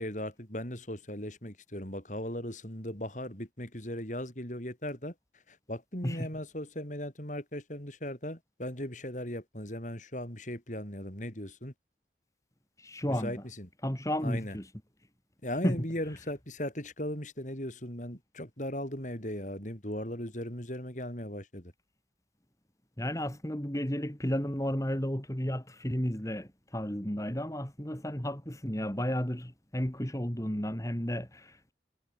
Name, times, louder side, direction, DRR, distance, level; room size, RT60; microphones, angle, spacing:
voice 1, 0.0-5.1 5.5-11.7 13.2-13.7 14.2-14.6 15.4-21.7, left 1 dB, 45° left, 5.9 m, -38 dB
voice 2, 12.8-13.4 13.8-14.7 15.6-15.8 23.0-31.7, equal, 20° left, 2.8 m, -33 dB
head